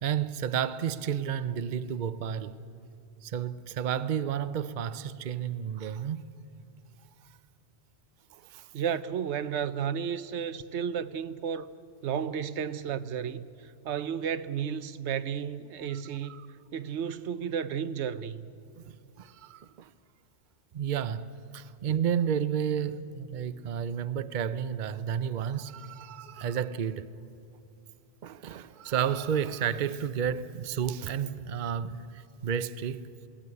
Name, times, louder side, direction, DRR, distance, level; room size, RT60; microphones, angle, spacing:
voice 1, 0.0-2.5 3.2-6.3 8.3-8.7 15.9-16.4 19.2-19.9 20.7-27.1 28.2-33.0, right 8 dB, 50° right, 0.7 m, -31 dB
voice 2, 8.7-11.7 12.0-16.4 16.7-18.5, right 8 dB, 85° right, 1.0 m, -33 dB
21.5 x 16.5 x 9.7 m
omnidirectional pair, 1.1 m